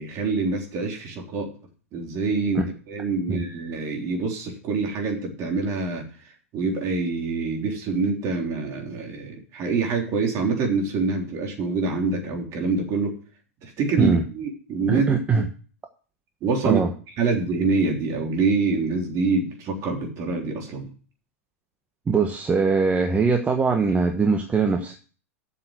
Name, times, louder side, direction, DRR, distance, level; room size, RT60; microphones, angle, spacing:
voice 1, 0.0-1.5 1.9-6.0 6.5-13.2 13.6-15.1 15.4-15.5 16.4-16.8 17.2-20.9, right 4 dB, 40° right, 1 dB, 3.6 m, -25 dB
voice 2, 14.9-15.5 16.6-16.9 22.1-24.9, right 4 dB, 20° right, 4 dB, 1.1 m, -21 dB
7.7 x 6.8 x 7.6 m, 0.39 s
hypercardioid pair, 105°, 8 cm